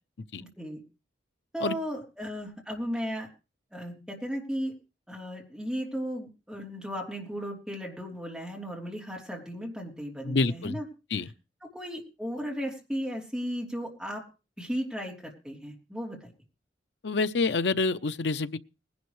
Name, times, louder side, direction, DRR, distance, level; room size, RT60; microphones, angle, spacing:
voice 1, 0.4-0.8 1.5-3.3 3.7-4.7 5.1-10.8 11.6-14.2 14.6-16.3, equal, 5° right, 3.2 m, -35 dB
voice 2, 10.2-10.8 11.1-11.3 17.0-18.6, left 3 dB, 75° left, 0.6 m, -27 dB
20.0 x 11.5 x 3.2 m
head